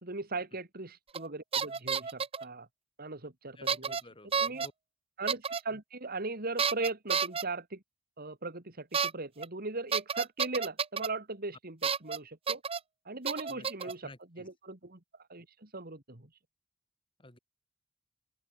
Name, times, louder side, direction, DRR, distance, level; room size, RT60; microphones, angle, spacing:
voice 1, 0.0-2.7 3.0-4.0 4.4-4.7 5.2-7.8 8.2-12.6 13.1-15.0 15.3-16.3, right 3 dB, 45° right, 2.6 m, -39 dB
sound 1, 1.1-1.3 1.5-2.4 3.7-4.0 4.3-4.7 5.3-5.6 6.6-7.4 8.9-9.1 9.4-9.5 9.9-11.1 11.8-12.2 12.5-12.8 13.3-13.9, right 6 dB, 30° right, 0.8 m, -30 dB
voice 2, 3.6-4.7 13.5-14.5 17.2-17.4, left 1 dB, 25° left, 4.4 m, -53 dB
open air
head